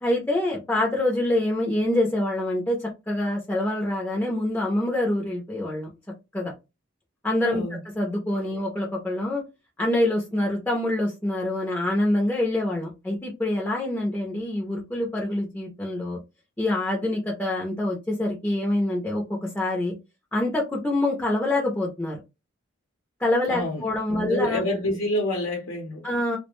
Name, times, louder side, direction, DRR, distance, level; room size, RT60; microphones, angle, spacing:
voice 1, 0.0-5.9 6.3-6.5 7.2-7.6 8.0-9.4 9.8-16.2 16.6-19.2 19.5-20.0 20.3-22.2 23.2-24.6 26.0-26.4, left 1 dB, 10° left, 0.4 m, -25 dB
voice 2, 23.5-23.8 24.1-26.1, left 1 dB, 85° left, 0.6 m, -27 dB
2.4 x 2.0 x 3.0 m
head